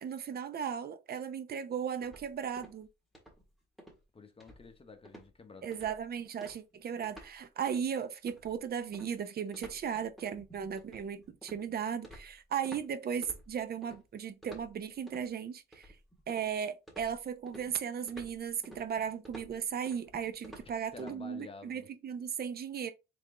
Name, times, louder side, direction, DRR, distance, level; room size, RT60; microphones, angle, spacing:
voice 1, 0.0-2.9 5.6-15.9 16.3-22.9, right 7 dB, 50° right, 0.7 m, -36 dB
sound 1, 2.0-2.9 3.1-3.5 3.8-4.0 4.4-4.8 5.1-5.3 5.7-6.1 6.4-7.4 7.7-7.9 8.3-12.9 13.2-14.0 14.4-15.3 15.7-16.6 16.9-21.2, right 1 dB, ahead, 1.6 m, -52 dB
voice 2, 4.1-5.7 20.6-21.9, left 4 dB, 30° left, 0.9 m, -50 dB
3.6 x 3.5 x 3.7 m
cardioid pair, 90°, 20 cm